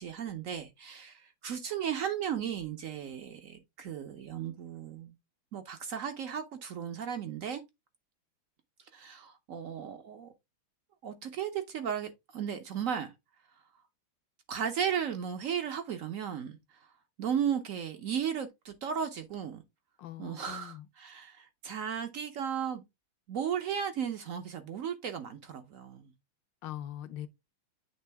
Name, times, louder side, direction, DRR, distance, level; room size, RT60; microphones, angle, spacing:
voice 1, 0.0-5.1 5.5-7.6 8.9-10.3 11.0-13.1 14.5-16.6 17.2-19.6 20.2-22.8 23.3-26.1, right 8 dB, 75° right, 0.7 m, -35 dB
voice 2, 20.0-20.9 26.6-27.3, left 12 dB, 75° left, 1.2 m, -41 dB
8.5 x 3.4 x 3.4 m
omnidirectional pair, 2.3 m